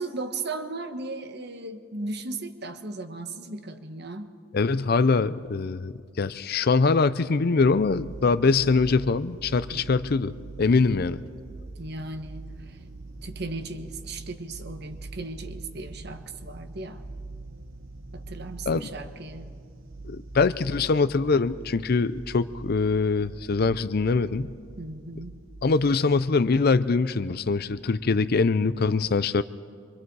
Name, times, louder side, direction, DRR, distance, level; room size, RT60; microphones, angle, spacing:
voice 1, 0.0-4.3 9.7-9.9 11.8-12.8 13.2-17.0 18.1-19.5 24.8-25.4, right 3 dB, 55° right, 8 dB, 1.2 m, -36 dB
voice 2, 4.5-10.3 10.6-11.2 18.7-18.9 20.0-24.5 25.6-29.4, left 4 dB, 50° left, 14 dB, 0.5 m, -23 dB
sound 1, 7.6-25.8, right 2 dB, 80° right, 1.1 m, -43 dB
26.0 x 24.0 x 4.7 m, 2.1 s
head